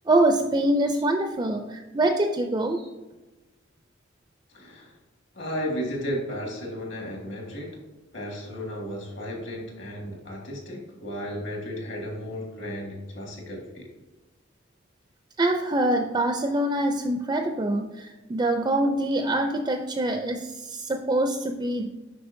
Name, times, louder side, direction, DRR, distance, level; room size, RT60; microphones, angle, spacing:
voice 1, 0.1-2.9 15.4-21.9, right 1 dB, 20° right, 5 dB, 0.4 m, -24 dB
voice 2, 4.5-4.9 5.3-7.8 8.1-13.9, equal, 60° left, 0 dB, 1.7 m, -34 dB
7.9 x 5.5 x 2.6 m, 1.1 s
head